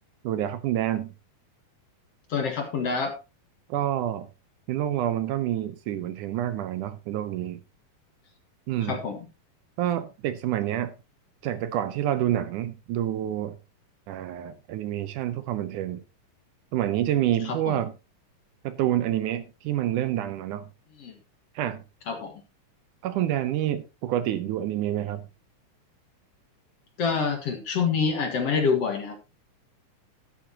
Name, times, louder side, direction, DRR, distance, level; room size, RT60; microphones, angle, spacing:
voice 1, 0.2-1.1 3.7-4.3 4.7-7.6 8.7-9.0 9.8-10.9 11.4-13.6 14.1-16.0 16.7-17.9 18.6-20.6 21.6-21.8 23.0-25.2, right 12 dB, 75° right, 2.1 m, -28 dB
voice 2, 2.3-3.2 8.8-9.2 17.4-17.8 21.0-21.1 22.1-22.3 27.0-29.2, left 5 dB, 55° left, 2.3 m, -26 dB
11.5 x 11.5 x 2.8 m
omnidirectional pair, 3.9 m